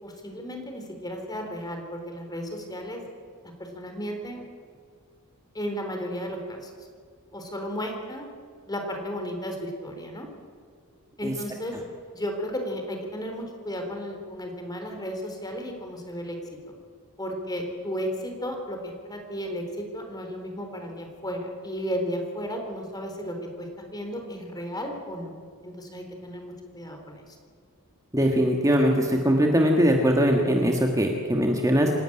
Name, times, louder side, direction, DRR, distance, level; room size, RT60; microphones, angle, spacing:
voice 1, 0.0-3.0 3.6-4.4 5.5-6.7 7.3-8.3 8.7-10.3 11.2-11.7 12.1-16.4 16.7-16.8 17.2-25.3 25.6-27.4, equal, 20° left, 3 dB, 3.8 m, -34 dB
voice 2, 28.1-31.9, equal, 15° right, 2 dB, 1.8 m, -21 dB
26.5 x 12.0 x 9.9 m, 2.1 s
head